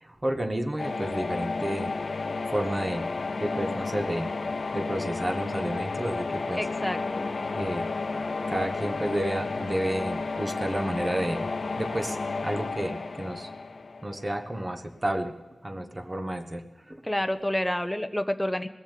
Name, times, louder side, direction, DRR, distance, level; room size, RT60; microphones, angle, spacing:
voice 1, 0.0-3.1 3.4-4.3 4.7-6.6 7.5-7.9 8.5-11.5 11.8-12.2 12.4-13.5 14.0-15.3 15.6-16.6 16.9-17.0, right 1 dB, 25° right, 7 dB, 1.4 m, -31 dB
sound 1, 0.8-14.6, left 3 dB, 60° left, 0.9 m, -32 dB
voice 2, 6.5-7.3 17.0-18.7, left 1 dB, 10° left, 7 dB, 0.9 m, -29 dB
20.0 x 7.2 x 8.4 m, 1.1 s
wide cardioid pair, 70°, 0 cm